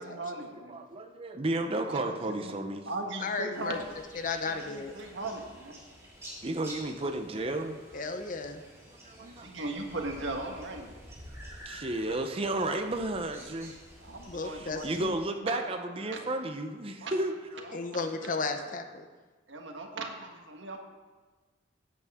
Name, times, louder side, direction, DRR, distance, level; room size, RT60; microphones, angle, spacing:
voice 1, 0.0-0.8 1.9-2.5 2.9-3.9 4.5-5.7 9.2-10.9 14.0-14.9 15.4-15.6 16.0-16.3 17.0-17.1 17.6-18.7 19.5-20.8, right 2 dB, 80° right, 3 dB, 1.5 m, -38 dB
voice 2, 0.7-2.9 6.4-8.0 9.0-9.5 9.9-10.1 11.6-13.8 14.4-17.3 17.6-17.7, right 2 dB, 30° right, 5 dB, 0.7 m, -33 dB
voice 3, 3.2-3.8 4.1-4.9 7.9-8.6 14.3-15.1 17.7-19.1, left 4 dB, 45° left, 7 dB, 0.8 m, -34 dB
sound 1, 3.5-15.1, equal, 15° right, 2.5 m, -50 dB
17.0 x 8.2 x 3.6 m, 1.3 s
head